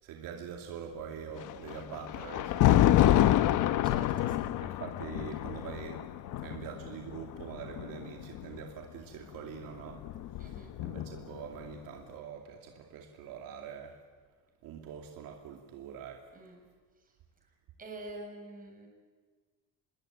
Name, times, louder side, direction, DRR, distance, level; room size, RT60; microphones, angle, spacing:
voice 1, 0.0-3.8 4.6-10.0 10.4-14.0 14.6-16.3, right 7 dB, 70° right, 2 dB, 2.6 m, -44 dB
Thunder, 1.4-8.6 9.6-11.4, left 13 dB, 60° left, 1.0 m, -27 dB
sound 1, 3.2-9.7, left 10 dB, 80° left, 2.9 m, -49 dB
voice 2, 3.8-4.6 10.4-10.7 16.3-16.6 17.8-18.9, right 2 dB, 25° right, 2 dB, 7.2 m, -46 dB
26.5 x 21.0 x 9.2 m, 1.5 s
cardioid pair, 140°, 34 cm